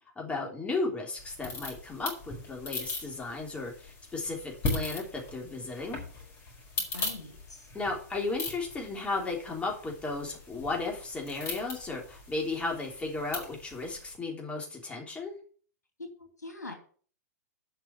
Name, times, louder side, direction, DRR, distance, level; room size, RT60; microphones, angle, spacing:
voice 1, 0.1-6.0 7.7-15.3, left 3 dB, 15° left, 0 dB, 3.3 m, -34 dB
sound 1, 1.2-14.1, left 3 dB, 30° left, 4.9 m, -39 dB
voice 2, 6.8-7.7 16.2-16.7, left 2 dB, 85° left, 3 dB, 3.3 m, -44 dB
8.2 x 6.0 x 8.2 m, 0.43 s
figure-of-eight pair, 105°, 9 cm